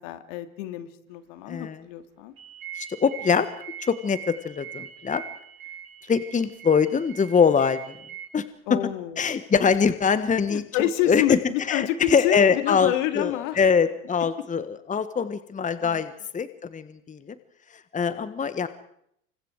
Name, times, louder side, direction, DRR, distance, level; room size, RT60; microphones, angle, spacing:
voice 1, 0.0-2.3 8.7-9.3 10.5-13.6 15.8-16.0, left 12 dB, 60° left, 9 dB, 2.8 m, -28 dB
voice 2, 1.5-1.8 2.7-3.5 3.8-5.2 6.1-7.8 8.3-8.4 9.2-10.6 11.1-11.4 11.7-17.3 17.9-18.7, left 6 dB, 20° left, 13 dB, 1.4 m, -23 dB
sound 1, 2.4-8.3, right 10 dB, 80° right, 6.2 m, -42 dB
28.5 x 25.5 x 4.8 m, 0.71 s
hypercardioid pair, 85°, 42 cm